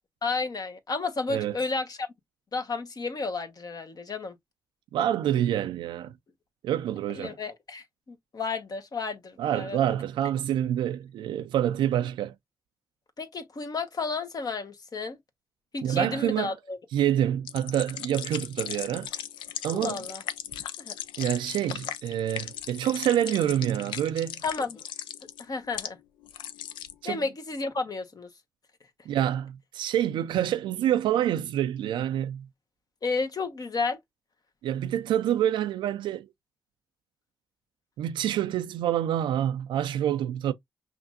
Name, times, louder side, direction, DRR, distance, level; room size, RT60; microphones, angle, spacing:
voice 1, 0.2-2.1 2.5-4.3 7.1-9.8 13.2-15.2 15.7-16.8 19.7-20.2 20.8-20.9 24.4-24.8 25.4-26.0 27.0-28.3 33.0-34.0, left 4 dB, 50° left, 1.1 m, -32 dB
voice 2, 4.9-6.1 6.6-7.3 9.4-12.3 15.8-16.5 16.9-19.1 19.6-20.0 21.2-24.4 27.0-27.2 29.1-32.5 34.6-36.3 38.0-40.5, right 11 dB, 85° right, 0.3 m, -27 dB
sound 1, 17.5-25.9 26.2-26.9, left 10 dB, 90° left, 0.4 m, -38 dB
5.8 x 2.5 x 2.4 m
supercardioid pair, 45°, 8 cm